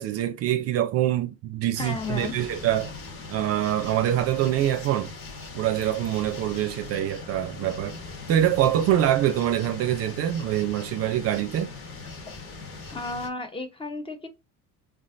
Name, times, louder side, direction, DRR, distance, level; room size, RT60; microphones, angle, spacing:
voice 1, 0.0-2.9 3.3-5.1 5.5-8.0 8.3-11.7, right 12 dB, 50° right, 0.5 m, -25 dB
sound 1, 1.8-13.3, left 3 dB, 50° left, 1.1 m, -40 dB
voice 2, 1.8-2.3 12.2-12.3 12.9-14.3, left 3 dB, 20° left, 0.5 m, -33 dB
3.7 x 2.4 x 2.4 m
cardioid pair, 115°, 30 cm